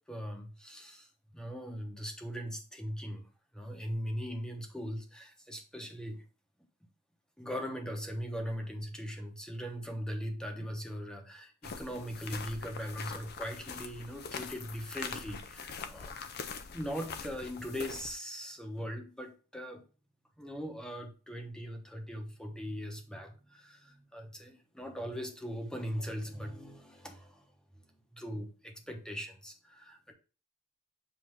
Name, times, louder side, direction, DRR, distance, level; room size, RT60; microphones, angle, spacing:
voice 1, 0.1-6.2 7.4-16.1 16.7-19.8 20.4-27.8 28.1-30.1, equal, 5° left, 3 dB, 0.9 m, -40 dB
sound 1, 11.6-18.1, left 5 dB, 50° left, 0.5 m, -43 dB
7.4 x 2.7 x 4.7 m, 0.35 s
head